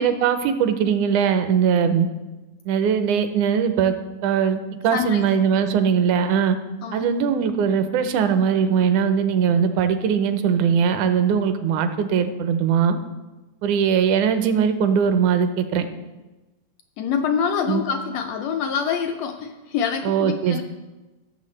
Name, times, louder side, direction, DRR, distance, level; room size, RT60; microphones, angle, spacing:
voice 1, 0.0-2.1 2.7-3.9 4.2-4.6 4.8-6.6 6.9-13.0 13.6-15.9 17.7-17.8 20.0-20.6, right 7 dB, 85° right, 9 dB, 2.1 m, -20 dB
voice 2, 17.0-20.6, left 7 dB, 85° left, 5 dB, 1.5 m, -25 dB
16.5 x 7.0 x 3.2 m, 1.1 s
omnidirectional pair, 3.5 m